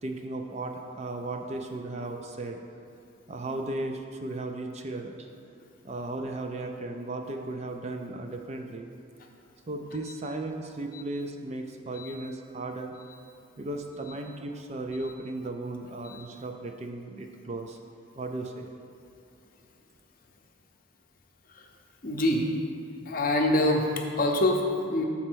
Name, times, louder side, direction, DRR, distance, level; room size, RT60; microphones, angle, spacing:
voice 1, 0.0-2.6 3.3-5.3 5.8-8.9 9.7-12.9 13.6-17.8 18.2-18.7, right 2 dB, 30° right, 4 dB, 0.4 m, -36 dB
voice 2, 22.0-22.5 23.1-25.0, left 1 dB, 45° left, 1 dB, 0.7 m, -26 dB
6.4 x 4.3 x 6.1 m, 2.6 s
head